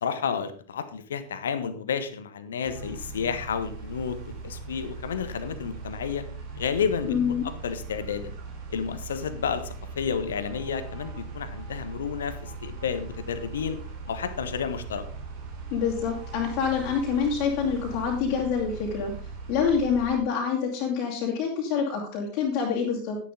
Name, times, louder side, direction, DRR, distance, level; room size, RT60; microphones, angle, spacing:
voice 1, 0.0-4.2 4.4-6.2 6.5-7.2 7.4-8.3 8.7-13.8 14.1-15.0, left 7 dB, 65° left, 11 dB, 1.2 m, -31 dB
sound 1, 2.6-20.2, right 4 dB, 50° right, 3.4 m, -39 dB
voice 2, 7.1-7.5 15.7-19.1 19.5-23.2, left 6 dB, 40° left, -4 dB, 2.6 m, -26 dB
11.0 x 10.5 x 3.8 m, 0.43 s
figure-of-eight pair, 90°, 0 cm